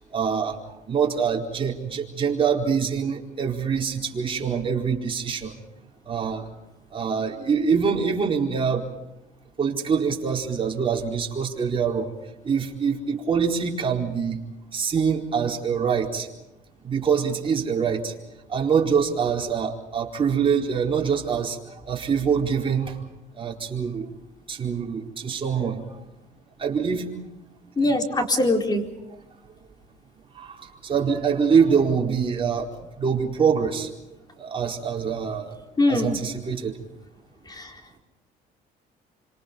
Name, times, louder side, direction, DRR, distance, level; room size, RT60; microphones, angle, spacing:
voice 1, 0.1-0.6 0.9-5.6 6.1-6.5 6.9-8.8 9.6-12.1 12.4-14.4 14.7-16.3 16.8-18.1 18.5-23.0 23.3-24.1 24.5-25.8 26.6-27.1 27.8-28.0 29.1-29.2 30.3-32.7 33.0-33.9 34.4-35.6 35.9-36.8, right 6 dB, 30° right, -1 dB, 4.5 m, -24 dB
voice 2, 27.8-28.8 35.8-36.1 37.5-37.7, left 2 dB, 25° left, 3 dB, 4.5 m, -22 dB
27.5 x 26.5 x 5.4 m, 0.90 s
cardioid pair, 110°, 17 cm